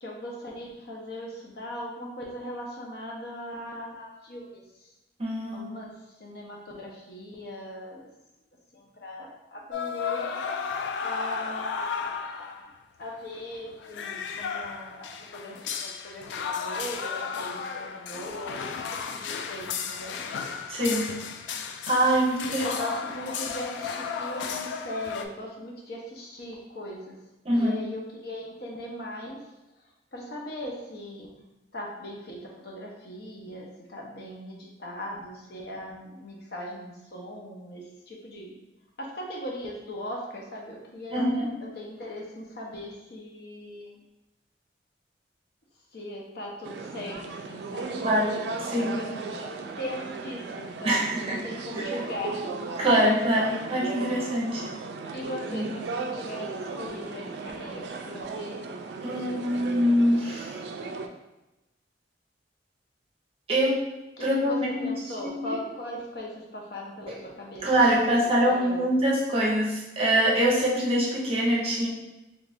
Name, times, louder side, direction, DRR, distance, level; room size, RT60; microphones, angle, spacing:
voice 1, 0.0-4.9 5.5-5.9 6.2-8.1 8.7-10.4 11.0-12.7 13.0-20.2 22.6-27.2 27.5-29.4 30.1-31.3 31.7-32.4 32.6-38.5 39.0-41.2 41.6-43.9 45.9-48.2 48.8-52.5 55.1-58.6 59.2-60.0 64.2-68.8, left 1 dB, 60° left, -2 dB, 0.7 m, -39 dB
voice 2, 5.2-5.7 20.7-21.1 21.9-22.7 27.4-27.7 41.1-41.6 48.0-49.0 50.8-51.4 51.7-51.8 52.8-54.7 55.5-55.7 59.0-60.6 63.5-63.9 64.2-64.9 65.3-65.6 67.1-67.2 67.6-71.9, equal, 35° right, -4 dB, 0.8 m, -24 dB
sound 1, 9.7-12.7 13.0-13.1 13.4-25.3, left 6 dB, 85° left, 0.3 m, -34 dB
sound 2, 46.6-61.1, right 4 dB, 65° right, 0.3 m, -36 dB
3.2 x 2.5 x 3.4 m, 0.98 s
head